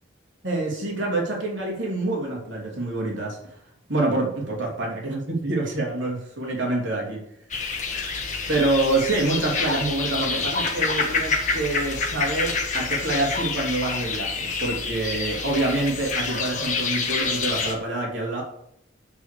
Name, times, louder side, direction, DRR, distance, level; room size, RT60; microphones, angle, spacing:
voice 1, 0.4-3.4 3.9-7.2 8.5-18.4, right 2 dB, 75° right, -2 dB, 3.1 m, -26 dB
sound 1, 7.5-17.7, left 4 dB, 40° left, 1.5 m, -27 dB
8.1 x 6.5 x 6.9 m, 0.73 s
head